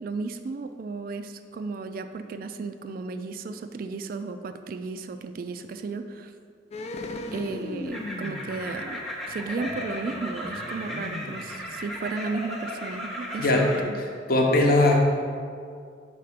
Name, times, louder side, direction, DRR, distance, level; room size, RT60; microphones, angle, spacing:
voice 1, 0.0-6.3 7.3-9.0 9.3-14.0, right 4 dB, 50° right, 9 dB, 0.3 m, -34 dB
sound 1, 6.7-12.1 12.4-12.5, left 2 dB, 35° left, 0.3 m, -38 dB
sound 2, 7.9-13.8, equal, ahead, 0.7 m, -36 dB
voice 2, 14.3-15.0, left 2 dB, 50° left, 0 dB, 0.9 m, -19 dB
5.8 x 4.2 x 5.0 m, 2.2 s
head